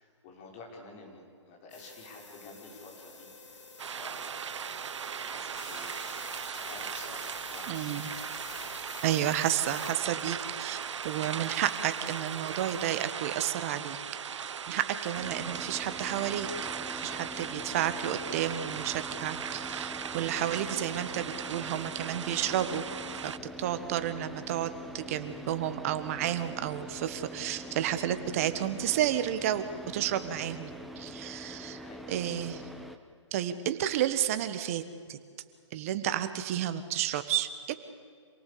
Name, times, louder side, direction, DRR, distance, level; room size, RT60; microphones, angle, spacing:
voice 1, 0.0-3.6 4.0-4.9 5.2-8.5 20.7-20.8 31.8-32.4, left 3 dB, 25° left, -1 dB, 5.4 m, -50 dB
sound 1, 1.7-13.1, left 3 dB, 85° left, 4.6 m, -48 dB
sound 2, 3.8-23.4, right 7 dB, 75° right, 0.7 m, -38 dB
voice 2, 7.7-8.1 9.0-14.0 14.3-16.5 16.9-22.8 23.2-23.3 23.6-29.7 29.9-32.6 33.3-34.8 35.1-35.2 35.7-37.7, right 11 dB, 30° right, 11 dB, 1.4 m, -31 dB
Car / Idling, 15.1-33.0, equal, ahead, 0.8 m, -44 dB
27.0 x 18.0 x 8.6 m, 2.2 s
hypercardioid pair, 160°, 15 cm